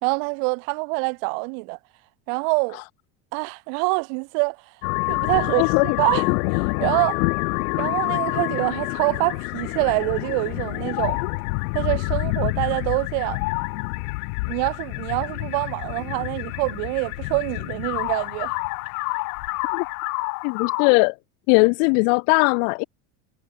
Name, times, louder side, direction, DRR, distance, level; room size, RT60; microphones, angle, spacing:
voice 1, 0.0-1.8 2.3-2.8 3.3-4.6 5.1-7.2 7.8-11.2 11.7-13.4 14.5-18.5, right 40 dB or more, 75° right, 4.3 m, -25 dB
sound 1, 4.8-20.9, left 27 dB, 85° left, 1.0 m, -27 dB
voice 2, 5.6-6.0 19.7-19.8 20.4-21.1 21.5-22.8, left 40 dB or more, 70° left, 0.6 m, -19 dB
cardioid pair, 135°, 43 cm